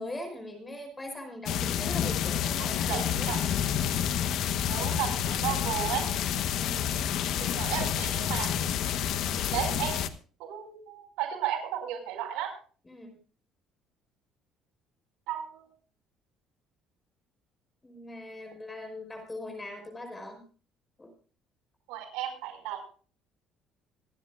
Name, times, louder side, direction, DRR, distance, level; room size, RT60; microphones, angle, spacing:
voice 1, 0.0-3.3 6.5-7.0 12.8-13.2 17.8-20.4 21.0-21.1, left 1 dB, 15° left, 5 dB, 5.1 m, -41 dB
sound 1, 1.5-10.1, left 9 dB, 70° left, 1.0 m, -29 dB
voice 2, 2.6-3.4 4.7-6.2 7.4-8.5 9.5-10.1 10.4-12.5 15.3-15.7 21.9-22.8, right 10 dB, 90° right, 1 dB, 5.3 m, -34 dB
27.0 x 10.0 x 2.5 m, 0.40 s
cardioid pair, 115°, 0 cm